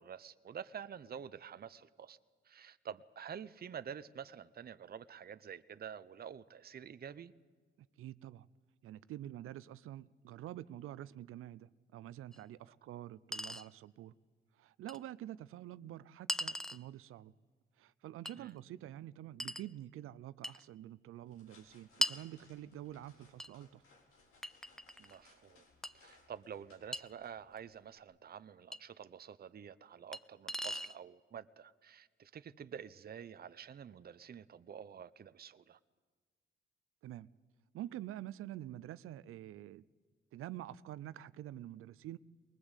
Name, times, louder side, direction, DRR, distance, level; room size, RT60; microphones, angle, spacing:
voice 1, 0.0-2.2 2.4-7.3 18.4-18.5 25.0-25.6 25.9-35.8, right 8 dB, 45° right, 0.7 m, -48 dB
voice 2, 8.0-8.5 8.8-14.2 14.6-17.3 17.8-23.8 37.0-37.3 37.7-39.8 40.3-42.2, right 13 dB, 85° right, 0.6 m, -47 dB
Chink clink, 12.3-12.4 13.3-13.7 14.9-15.0 16.3-16.8 18.3-18.4 19.4-19.7 20.4-20.6 22.0-22.2 23.4-23.5 24.4-25.2 25.8-25.9 26.9-27.0 28.7-28.8 30.1-30.2 30.5-31.0, equal, ahead, 0.6 m, -38 dB
sound 1, 21.1-28.0, left 3 dB, 85° left, 3.6 m, -67 dB
21.5 x 20.0 x 8.2 m
cardioid pair, 80°, 21 cm